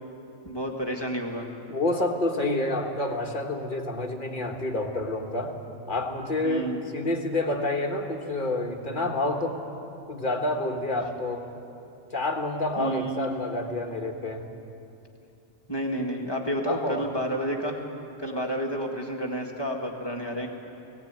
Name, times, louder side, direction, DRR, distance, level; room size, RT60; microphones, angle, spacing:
voice 1, 0.4-1.5 6.4-6.8 12.8-13.3 15.7-17.8 18.2-20.5, right 1 dB, 20° left, 0 dB, 2.1 m, -30 dB
voice 2, 1.7-5.5 5.9-9.6 10.1-11.5 12.1-14.4 16.7-17.1, left 2 dB, 45° left, 3 dB, 1.8 m, -28 dB
19.0 x 17.0 x 9.1 m, 2.8 s
omnidirectional pair, 1.2 m